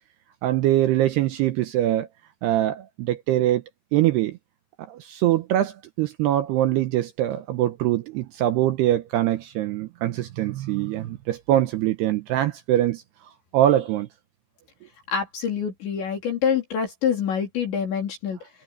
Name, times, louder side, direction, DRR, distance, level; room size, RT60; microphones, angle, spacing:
voice 1, 0.4-2.1 2.4-3.6 3.9-4.4 4.8-13.0 13.5-14.1, right 13 dB, 85° right, 2.4 m, -23 dB
voice 2, 15.1-18.5, left 7 dB, 60° left, 5.8 m, -26 dB
omnidirectional pair, 5.8 m